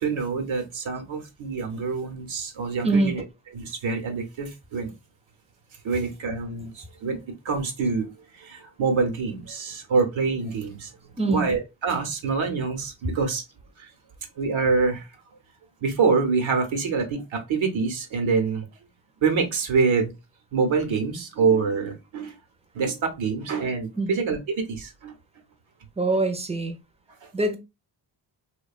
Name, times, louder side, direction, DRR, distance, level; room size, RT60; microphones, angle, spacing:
voice 1, 0.0-3.2 3.5-4.9 5.8-10.9 11.3-13.4 13.8-13.9 14.4-15.1 15.8-18.7 19.2-20.1 20.5-22.4 22.7-25.1 27.2-27.3, right 4 dB, 75° right, 0.8 m, -26 dB
voice 2, 26.0-26.8 27.3-27.6, right 2 dB, 15° right, 0.4 m, -23 dB
2.7 x 2.2 x 2.3 m
cardioid pair, 70°, 47 cm